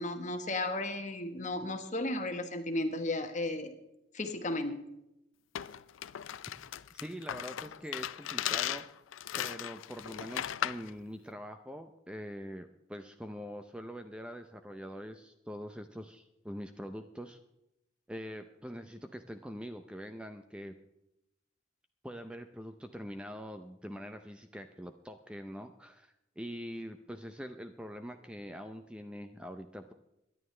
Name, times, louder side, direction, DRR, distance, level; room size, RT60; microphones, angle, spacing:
voice 1, 0.0-3.7 4.1-4.8, left 2 dB, 40° left, 7 dB, 1.2 m, -34 dB
sound 1, 5.5-10.9, left 10 dB, 85° left, 0.4 m, -37 dB
voice 2, 6.9-8.9 9.4-17.4 18.1-20.7 22.0-29.9, equal, 5° right, 7 dB, 0.5 m, -44 dB
23.0 x 11.0 x 3.3 m, 0.88 s
head